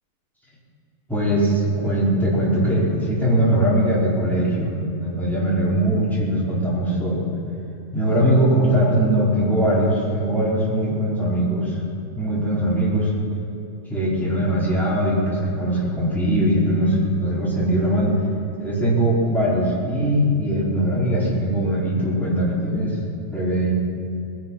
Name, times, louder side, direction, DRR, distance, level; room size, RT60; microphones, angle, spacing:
voice 1, 1.1-4.7 5.0-7.2 7.9-11.8 12.1-13.1 13.9-18.2 18.6-23.0 23.3-23.7, right 1 dB, ahead, -9 dB, 4.8 m, -21 dB
21.0 x 11.5 x 5.8 m, 2.7 s
omnidirectional pair, 3.4 m